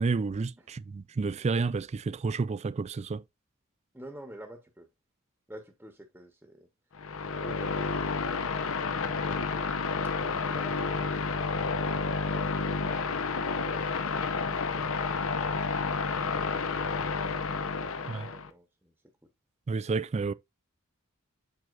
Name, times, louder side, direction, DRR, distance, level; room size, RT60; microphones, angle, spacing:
voice 1, 0.0-3.2 18.1-18.3 19.7-20.3, right 4 dB, 30° right, 0.3 m, -30 dB
voice 2, 3.9-4.9 5.5-6.7 7.2-8.2 8.6-18.9, right 1 dB, 10° right, 1.1 m, -50 dB
sound 1, 6.9-18.5, left 4 dB, 65° left, 0.8 m, -30 dB
7.8 x 5.9 x 2.5 m
head